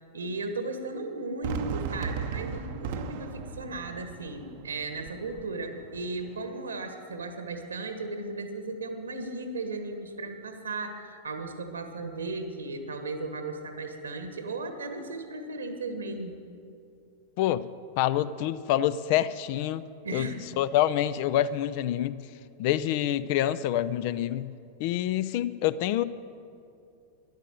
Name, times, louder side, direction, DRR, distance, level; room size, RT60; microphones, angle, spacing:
voice 1, 0.1-16.4 20.0-20.4, right 2 dB, 70° right, 7 dB, 1.6 m, -36 dB
Fireworks, 1.4-6.5, right 6 dB, 50° right, 0.8 m, -37 dB
voice 2, 17.4-17.7 18.0-19.8 20.1-20.3 20.6-22.2 22.6-24.5 24.8-26.0, left 12 dB, 45° left, 16 dB, 0.5 m, -26 dB
13.0 x 11.5 x 7.5 m, 2.6 s
figure-of-eight pair, 90°, 0 cm